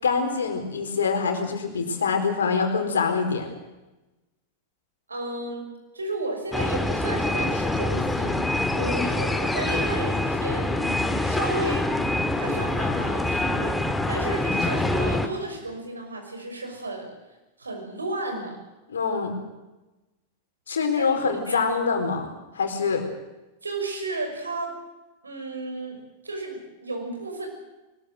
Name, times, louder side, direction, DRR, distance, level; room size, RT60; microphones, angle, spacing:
voice 1, 0.0-3.5 8.7-9.1 18.9-19.3 20.7-23.1, left 5 dB, 70° left, 5 dB, 4.3 m, -25 dB
voice 2, 5.1-8.5 9.0-12.0 12.3-17.1 17.6-18.6 21.0-21.2 21.5-21.8 23.6-24.7 25.2-27.5, right 2 dB, 80° right, 3 dB, 6.3 m, -33 dB
sound 1, 6.5-15.3, left 1 dB, 5° left, 2.0 m, -25 dB
22.0 x 20.5 x 7.8 m, 1.1 s
figure-of-eight pair, 90°, 0 cm